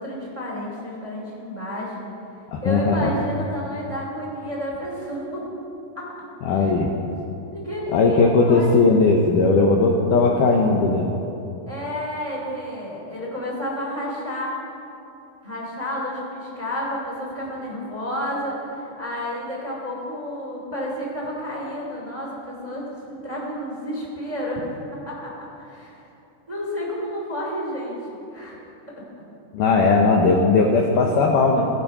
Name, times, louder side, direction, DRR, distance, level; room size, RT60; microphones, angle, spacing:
voice 1, 0.0-2.1 2.6-5.4 5.9-6.1 6.6-6.7 7.5-9.0 11.7-14.6 15.4-24.6 25.0-26.1 26.5-28.0 28.3-28.6 28.9-29.0, equal, 10° right, -4 dB, 1.7 m, -31 dB
voice 2, 2.5-3.1 6.4-6.9 7.9-11.1 29.5-31.7, left 3 dB, 85° left, 0 dB, 1.8 m, -18 dB
16.0 x 11.0 x 5.4 m, 2.9 s
omnidirectional pair, 5.0 m